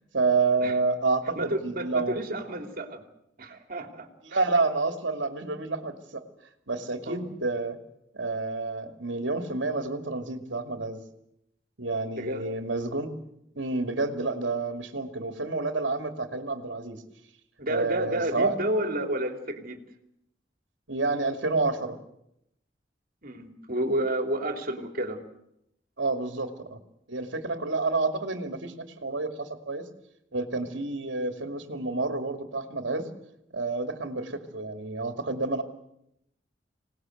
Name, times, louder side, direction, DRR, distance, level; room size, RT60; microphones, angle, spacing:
voice 1, 0.1-2.2 4.2-6.2 6.7-7.8 8.1-11.0 11.8-13.1 13.6-17.0 17.7-18.6 20.9-22.0 26.0-26.8 27.1-29.8 30.3-33.1 33.5-35.6, right 3 dB, 75° right, 5 dB, 2.5 m, -29 dB
voice 2, 1.3-3.0 3.4-4.4 7.1-7.2 12.2-12.5 17.6-19.8 23.2-25.2, right 1 dB, 50° right, 5 dB, 3.1 m, -31 dB
26.0 x 19.0 x 7.9 m, 0.79 s
head